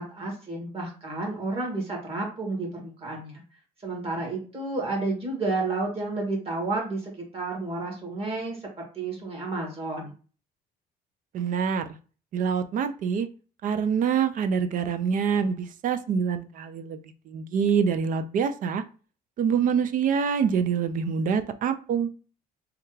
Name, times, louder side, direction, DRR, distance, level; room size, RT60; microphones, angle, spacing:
voice 1, 0.0-3.4 3.8-10.1, right 3 dB, 35° right, -1 dB, 1.7 m, -31 dB
voice 2, 11.3-11.9 12.3-13.3 13.6-17.0 17.3-18.8 19.4-22.1, right 7 dB, 50° right, 10 dB, 0.4 m, -25 dB
3.3 x 2.3 x 3.1 m, 0.37 s
cardioid pair, 110°, 17 cm